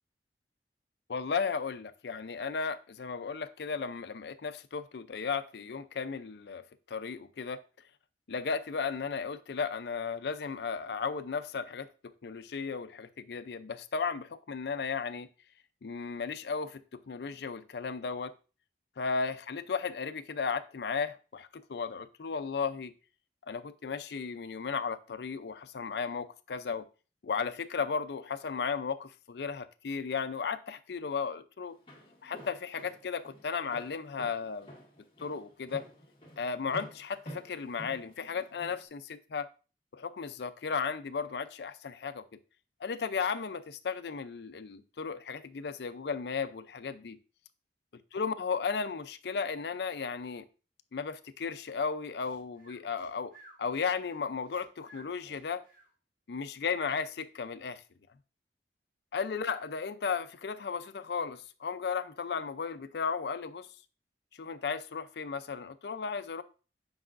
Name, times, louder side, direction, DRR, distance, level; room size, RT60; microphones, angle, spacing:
voice 1, 1.1-7.6 8.3-11.9 12.2-15.3 15.8-18.3 19.0-22.9 23.5-26.8 27.2-31.8 32.2-34.7 35.2-35.8 36.4-39.5 39.9-42.2 42.8-47.2 48.1-50.5 50.9-55.6 56.3-57.8 59.1-63.7 64.4-66.4, left 5 dB, 70° left, 0.5 m, -35 dB
Walk footsteps, 31.7-38.8, equal, 30° left, 1.7 m, -49 dB
Breathing, 52.2-55.9, right 1 dB, 50° right, 1.5 m, -56 dB
8.0 x 4.8 x 2.5 m
head